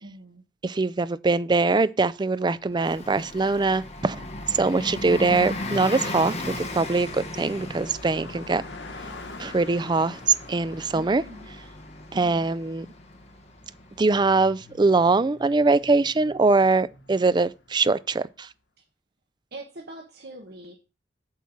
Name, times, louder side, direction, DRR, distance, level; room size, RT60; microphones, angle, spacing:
voice 1, 0.0-0.4 10.9-11.6 19.5-20.8, right 1 dB, 60° right, 1.3 m, -43 dB
voice 2, 0.6-4.2 4.5-8.6 9.4-10.2 10.5-11.2 12.1-12.9 14.0-18.5, right 3 dB, 25° right, 0.4 m, -22 dB
Car passing by, 2.2-18.3, left 3 dB, 80° left, 1.5 m, -49 dB
Bus, 2.7-15.0, left 1 dB, 35° left, 1.5 m, -37 dB
8.4 x 4.5 x 7.2 m
head